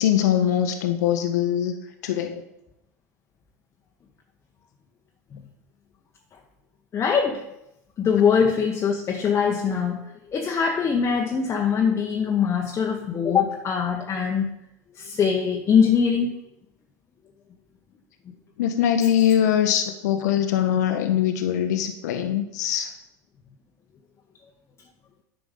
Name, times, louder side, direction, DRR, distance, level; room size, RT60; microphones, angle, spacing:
voice 1, 0.0-1.8 2.0-2.4 18.6-23.0, left 10 dB, 70° left, 7 dB, 0.7 m, -22 dB
voice 2, 6.9-7.4 8.0-14.5 14.9-16.4, left 6 dB, 30° left, 3 dB, 0.8 m, -22 dB
8.7 x 5.1 x 5.0 m, 0.86 s
hypercardioid pair, 85°, 9 cm